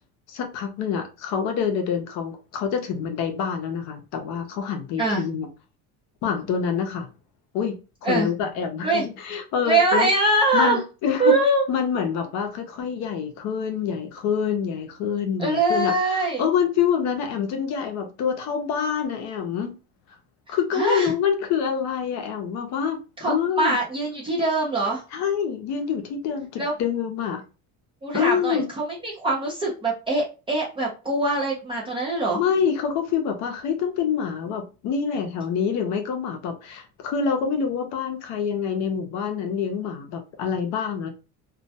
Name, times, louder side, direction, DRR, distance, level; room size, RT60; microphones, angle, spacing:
voice 1, 0.3-5.5 6.2-7.1 7.5-7.8 8.0-10.1 10.5-11.4 11.7-19.7 20.5-23.8 25.1-27.4 28.1-28.7 32.4-41.1, left 7 dB, 50° left, 0.6 m, -26 dB
voice 2, 9.6-10.8 11.2-11.7 15.4-16.5 20.5-21.1 23.2-25.0 26.6-26.7 28.0-32.4, right 2 dB, 15° right, 0.3 m, -23 dB
2.2 x 2.1 x 2.6 m
cardioid pair, 175°, 36 cm